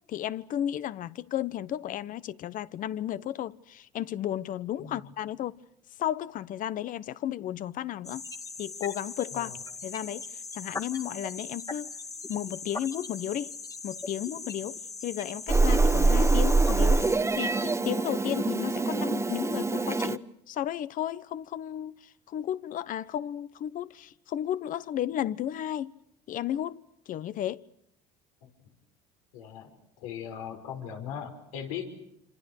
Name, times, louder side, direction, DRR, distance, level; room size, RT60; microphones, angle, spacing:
voice 1, 0.1-5.5 6.0-8.2 8.6-9.6 9.8-11.9 12.3-13.5 13.8-17.0 17.4-25.9 26.3-27.6, left 11 dB, 55° left, 1.1 m, -33 dB
sound 1, 8.0-17.2, left 4 dB, 20° left, 2.0 m, -40 dB
Meow, 15.5-20.2, right 3 dB, 15° right, 1.3 m, -24 dB
voice 2, 29.3-29.7 30.0-31.9, left 8 dB, 85° left, 5.4 m, -39 dB
27.0 x 26.5 x 6.6 m
supercardioid pair, 85°, 17 cm